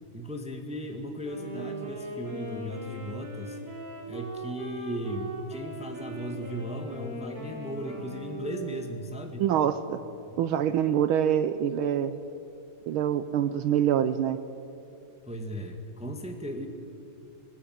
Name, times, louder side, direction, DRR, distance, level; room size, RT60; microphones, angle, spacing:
voice 1, 0.1-3.6 4.1-9.4 10.3-10.4 15.2-16.7, equal, 5° right, 4 dB, 1.6 m, -37 dB
Wind instrument woodwind instrument, 1.2-9.3, right 1 dB, 50° right, 5.9 m, -39 dB
voice 2, 9.4-10.0 10.4-12.2 12.9-14.4, right 9 dB, 80° right, 12 dB, 1.6 m, -25 dB
20.5 x 20.0 x 9.5 m, 2.6 s
omnidirectional pair, 2.3 m